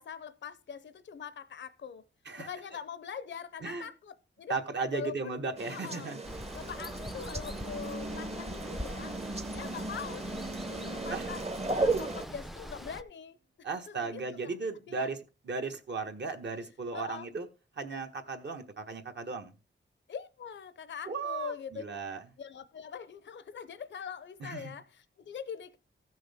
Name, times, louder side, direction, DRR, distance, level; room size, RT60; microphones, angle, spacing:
voice 1, 0.0-2.0 2.4-4.5 4.9-5.3 5.7-6.1 6.5-9.1 9.5-14.5 14.9-15.1 16.9-17.3 20.1-21.8 22.4-25.8, left 7 dB, 60° left, 0.6 m, -43 dB
voice 2, 4.5-6.2 11.1-11.3 13.6-17.5 17.7-19.5 21.0-22.3 24.4-24.7, right 4 dB, 55° right, 1.3 m, -36 dB
sound 1, 5.6-12.2, right 2 dB, 30° right, 0.9 m, -35 dB
Water, 6.2-13.0, equal, ahead, 0.4 m, -43 dB
sound 2, 9.0-12.8, right 7 dB, 85° right, 1.8 m, -51 dB
15.0 x 6.2 x 3.5 m
wide cardioid pair, 140°, 21 cm